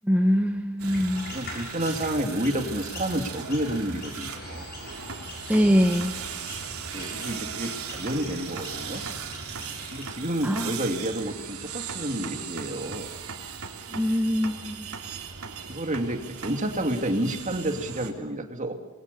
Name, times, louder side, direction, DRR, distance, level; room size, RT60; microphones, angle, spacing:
voice 1, 0.0-1.3 5.5-6.1 10.4-10.7 13.9-14.9, equal, 5° right, 3 dB, 1.2 m, -23 dB
sound 1, 0.8-10.1, left 2 dB, 45° left, 6.4 m, -42 dB
sound 2, 0.8-18.1, right 6 dB, 85° right, 3.3 m, -38 dB
voice 2, 1.3-4.8 6.9-9.0 9.9-13.2 15.7-18.7, right 1 dB, 35° right, 4 dB, 2.7 m, -30 dB
27.5 x 21.5 x 7.0 m, 1.1 s
head